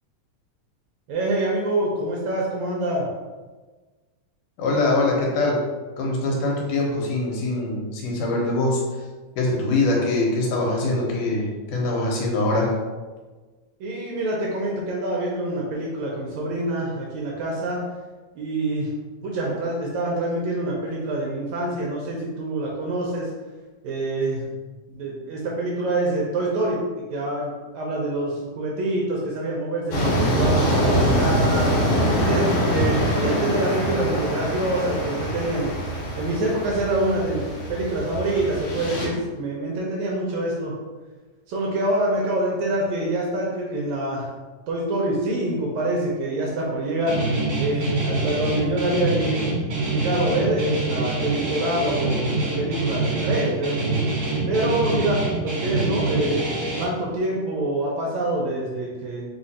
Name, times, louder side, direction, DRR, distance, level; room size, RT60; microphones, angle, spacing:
voice 1, 1.1-3.1 13.8-17.8 18.4-18.9 19.2-23.3 23.8-24.5 24.9-26.8 27.1-31.7 32.2-35.7 36.2-40.7 41.5-44.3 44.7-47.2 47.6-49.4 49.9-53.8 54.5-56.5 56.8-59.3, right 1 dB, 75° right, -2 dB, 1.8 m, -26 dB
voice 2, 4.6-5.6 6.0-8.8 9.4-12.8, left 2 dB, 80° left, -2 dB, 2.4 m, -23 dB
sound 1, 29.9-39.1, equal, 60° left, 1.7 m, -24 dB
Guitar, 47.1-56.8, right 2 dB, 55° right, 2.2 m, -25 dB
4.9 x 2.4 x 4.1 m, 1.3 s
omnidirectional pair, 3.7 m